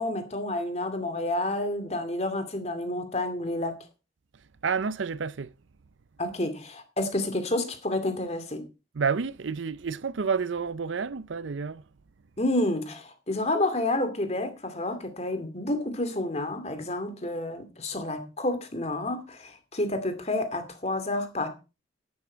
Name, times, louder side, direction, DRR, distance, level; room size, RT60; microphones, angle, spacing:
voice 1, 0.0-3.8 6.2-8.6 12.4-21.5, left 1 dB, 35° left, 2.4 m, -29 dB
voice 2, 4.6-5.5 8.9-11.8, right 5 dB, 80° right, 0.6 m, -29 dB
11.5 x 10.5 x 4.5 m
head